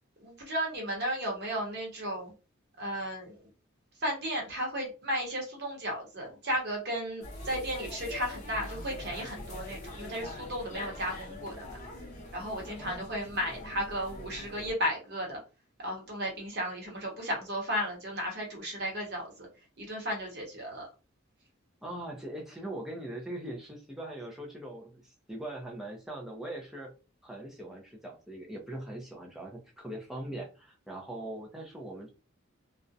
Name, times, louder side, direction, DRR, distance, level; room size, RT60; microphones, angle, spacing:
voice 1, 0.2-2.3 2.8-3.5 4.0-11.8 12.3-15.4 15.8-19.5 19.8-20.9, equal, 55° right, 0 dB, 0.9 m, -34 dB
sound 1, 7.2-14.7, left 1 dB, 35° left, 0.7 m, -43 dB
voice 2, 12.8-13.1 21.8-26.9 27.2-32.1, right 1 dB, ahead, -1 dB, 0.5 m, -41 dB
2.4 x 2.1 x 2.6 m, 0.33 s
head